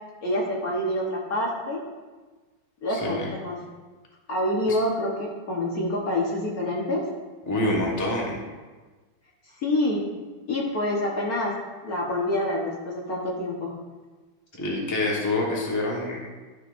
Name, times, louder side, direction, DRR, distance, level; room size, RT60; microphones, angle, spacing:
voice 1, 0.2-1.8 2.8-3.6 4.3-7.0 9.6-10.0 10.5-13.7, left 1 dB, 50° left, -3 dB, 1.6 m, -27 dB
voice 2, 2.9-3.3 4.7-4.8 7.5-8.4 14.6-16.2, left 2 dB, 10° left, -3 dB, 1.2 m, -26 dB
12.5 x 6.4 x 2.6 m, 1.3 s
omnidirectional pair, 2.2 m